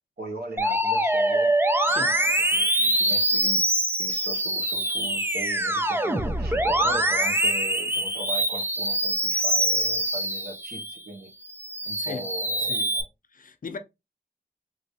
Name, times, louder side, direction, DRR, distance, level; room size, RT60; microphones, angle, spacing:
voice 1, 0.2-1.5 1.9-3.6 3.9-11.3 11.8-13.1, right 1 dB, 80° right, 1.1 m, -39 dB
Musical instrument, 0.6-11.0 11.5-13.0, right 1 dB, 15° right, 0.6 m, -24 dB
voice 2, 13.3-13.8, left 5 dB, 60° left, 0.7 m, -37 dB
3.1 x 2.8 x 2.7 m
cardioid pair, 55°, 16 cm